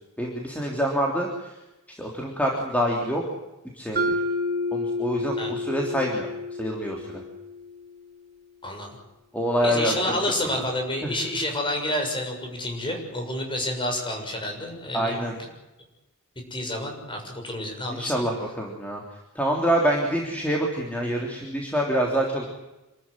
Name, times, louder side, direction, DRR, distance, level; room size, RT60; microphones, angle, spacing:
voice 1, 0.2-1.6 2.0-3.2 3.7-4.1 4.7-6.3 6.6-7.2 9.3-9.9 10.5-10.6 11.0-11.1 14.9-15.3 17.9-19.0 19.4-22.5, equal, 5° left, -1 dB, 3.4 m, -26 dB
Mallet percussion, 4.0-8.0, left 2 dB, 45° right, 3.1 m, -30 dB
voice 2, 9.6-15.2 16.5-18.2, left 1 dB, 20° left, 2 dB, 6.7 m, -29 dB
27.5 x 14.0 x 10.0 m, 1.0 s
head